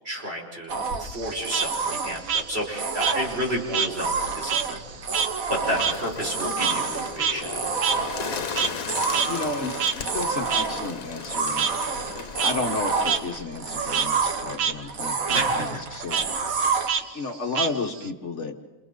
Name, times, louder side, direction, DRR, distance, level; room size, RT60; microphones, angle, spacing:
voice 1, 0.0-4.8 5.5-7.5 15.3-15.8, equal, 45° right, -2 dB, 6.0 m, -31 dB
sound 1, 0.7-16.9, right 5 dB, 85° right, 1.8 m, -29 dB
Frog, 1.0-4.0 4.3-8.9 9.1-9.3 9.8-9.9 10.5-10.6 11.6-11.7 12.2-12.5 13.0-13.2 13.5-14.1 14.5-14.7 15.0-15.4 16.1-16.2 16.9-18.1, right 7 dB, 70° right, 1.2 m, -27 dB
Bird, 5.6-13.2, left 6 dB, 90° left, 1.5 m, -36 dB
voice 2, 6.4-6.8 9.3-11.9 12.1-16.2 17.1-18.6, left 3 dB, 60° left, 4 dB, 1.6 m, -32 dB
29.0 x 27.5 x 3.9 m, 1.3 s
omnidirectional pair, 1.4 m